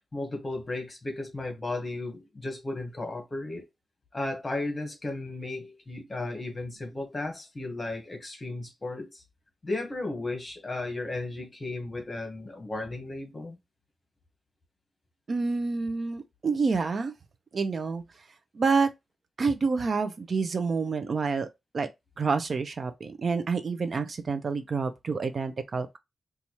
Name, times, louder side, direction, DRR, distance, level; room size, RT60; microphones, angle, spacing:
voice 1, 0.1-3.6 4.1-9.2 9.6-13.6, left 2 dB, 25° left, 1.1 m, -35 dB
voice 2, 15.3-17.1 17.5-18.0 18.5-18.9 19.4-21.5 21.7-21.9 22.2-26.0, right 4 dB, 45° right, 0.4 m, -28 dB
4.1 x 2.3 x 3.0 m
wide cardioid pair, 145°, 0 cm